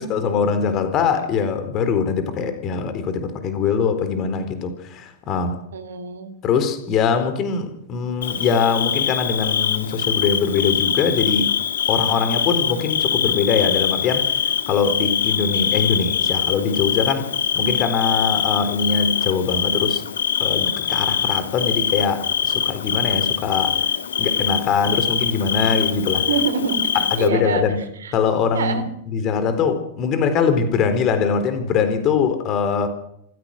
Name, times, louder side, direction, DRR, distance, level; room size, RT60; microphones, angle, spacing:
voice 1, 0.1-5.6 6.4-11.5 11.9-17.3 17.5-20.0 20.4-23.8 24.2-26.3 27.1-27.8 28.1-32.9, left 6 dB, 35° left, 3.9 m, -22 dB
voice 2, 5.7-6.3 26.2-27.6 28.0-28.1 28.5-28.9, right 5 dB, 65° right, 3.2 m, -26 dB
Bird / Cricket, 8.2-27.3, left 8 dB, 65° left, 1.5 m, -23 dB
26.5 x 15.5 x 6.4 m
figure-of-eight pair, 90°, 0 cm